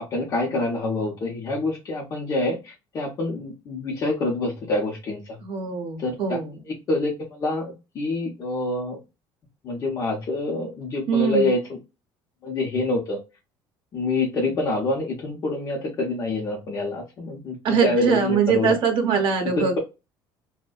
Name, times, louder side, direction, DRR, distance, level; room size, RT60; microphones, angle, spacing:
voice 1, 0.0-5.4 6.0-6.4 6.9-9.0 9.6-11.6 12.4-13.2 13.9-18.7 19.6-19.8, left 2 dB, 40° left, -3 dB, 0.7 m, -26 dB
voice 2, 5.4-6.6 11.1-11.5 17.6-19.8, right 6 dB, 60° right, 3 dB, 0.7 m, -23 dB
2.6 x 2.1 x 2.3 m, 0.26 s
cardioid pair, 135°, 10 cm